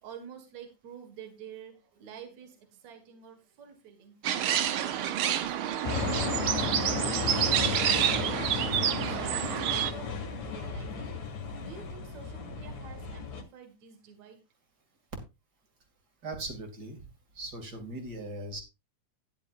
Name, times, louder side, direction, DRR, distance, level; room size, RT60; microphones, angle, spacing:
voice 1, 0.0-4.1 4.4-6.1 6.5-9.4 9.7-11.2 11.6-14.4, right 7 dB, 65° right, 5 dB, 2.9 m, -49 dB
sound 1, 4.2-9.9, right 10 dB, 85° right, 1.1 m, -28 dB
sound 2, 5.8-13.4, left 6 dB, 65° left, 3.1 m, -34 dB
voice 2, 16.2-17.0 17.3-18.6, right 2 dB, 35° right, 4 dB, 2.6 m, -39 dB
13.5 x 10.5 x 2.5 m, 0.26 s
omnidirectional pair, 3.4 m